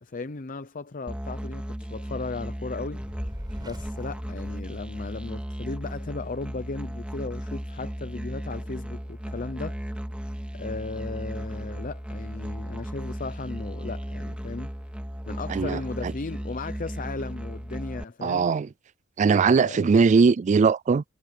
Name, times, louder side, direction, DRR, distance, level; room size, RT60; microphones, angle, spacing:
voice 1, 0.0-3.0 3.6-9.8 10.5-14.7 15.3-18.5 19.5-19.9, left 3 dB, 40° left, 0.7 m, -36 dB
Musical instrument, 1.1-18.0, equal, 5° right, 2.1 m, -35 dB
Fire, 3.0-5.4, equal, 20° right, 7.5 m, -40 dB
voice 2, 15.5-16.1 18.2-18.7 19.2-21.0, right 5 dB, 35° right, 0.3 m, -20 dB
head